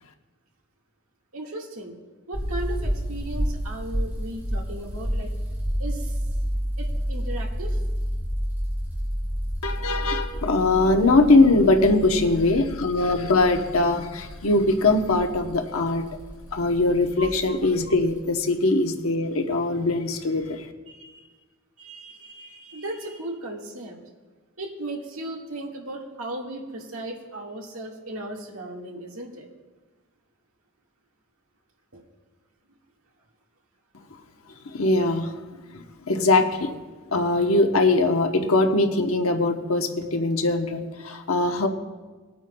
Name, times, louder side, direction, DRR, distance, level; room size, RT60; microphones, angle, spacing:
voice 1, 1.3-1.9 2.3-5.3 5.8-6.2 6.8-7.8 20.9-21.2 21.8-24.0 24.6-29.5 31.9-32.0, right 1 dB, 85° right, 0 dB, 1.8 m, -36 dB
sound 1, 2.3-18.2, equal, 10° right, 3.0 m, -30 dB
voice 2, 9.6-16.0 16.5-20.7 34.7-35.4 35.7-36.7 37.1-41.7, left 2 dB, 85° left, 5 dB, 1.0 m, -21 dB
21.5 x 9.0 x 2.3 m, 1.4 s
head